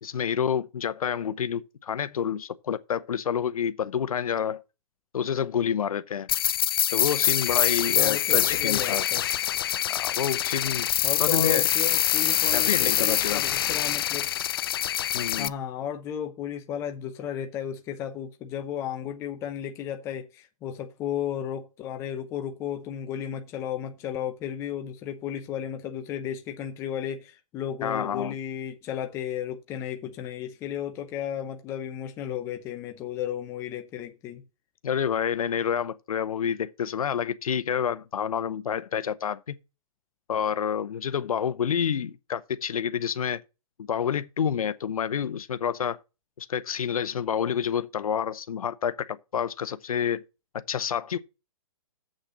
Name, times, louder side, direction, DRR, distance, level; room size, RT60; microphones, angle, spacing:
voice 1, 0.0-4.6 5.1-6.3 6.9-9.1 9.9-10.9 11.2-11.7 12.5-13.4 15.1-15.5 27.8-28.3 34.8-39.6 40.3-43.4 43.9-46.0 46.4-50.2 50.7-51.2, left 8 dB, 80° left, 0.7 m, -28 dB
sound 1, 6.3-15.5, left 11 dB, 40° left, 0.4 m, -25 dB
voice 2, 8.0-9.2 11.0-14.3 15.4-34.4, left 9 dB, 15° left, 0.7 m, -34 dB
7.3 x 6.5 x 6.3 m
hypercardioid pair, 160°, 18 cm